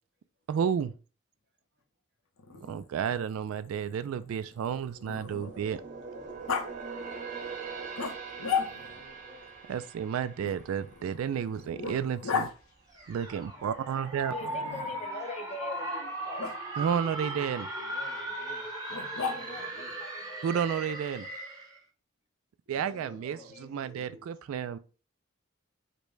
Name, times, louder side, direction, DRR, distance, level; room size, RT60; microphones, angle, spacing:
voice 1, 0.5-0.9 2.7-5.8 9.7-12.5 13.1-14.3 16.8-17.7 20.4-21.3 22.7-24.8, right 7 dB, 75° right, 0.3 m, -31 dB
Growling, 2.4-5.8 6.5-6.7 8.0-9.1 10.4-12.5 14.4-15.1 16.4-16.5 18.9-19.7, left 5 dB, 75° left, 0.7 m, -36 dB
voice 2, 2.5-2.9 5.3-6.4 8.6-9.5 17.7-18.7 19.1-19.9 22.7-24.2, left 1 dB, 55° right, 1.3 m, -53 dB
sound 1, 4.5-12.0 12.4-12.6 13.1-13.9 14.2-14.3, right 5 dB, 40° right, 0.9 m, -43 dB
sound 2, 12.9-21.8, right 1 dB, 20° right, 1.1 m, -38 dB
voice 3, 14.2-16.6 19.2-20.9 23.0-24.1, left 2 dB, 30° left, 0.5 m, -44 dB
5.1 x 2.1 x 4.6 m
head